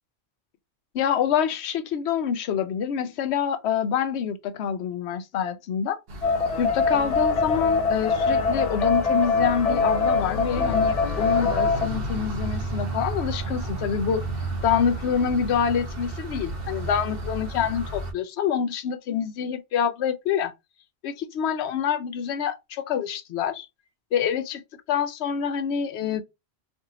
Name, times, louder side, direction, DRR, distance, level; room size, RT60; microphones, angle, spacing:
voice 1, 0.9-6.0 6.6-14.2 14.6-20.5 21.0-23.7 24.1-24.6 24.9-26.2, left 8 dB, 85° left, 0.8 m, -26 dB
sound 1, 6.1-18.1, right 1 dB, 65° right, 0.8 m, -33 dB
sound 2, 6.2-11.9, left 4 dB, 50° left, 0.5 m, -23 dB
2.6 x 2.6 x 2.7 m
omnidirectional pair, 1.1 m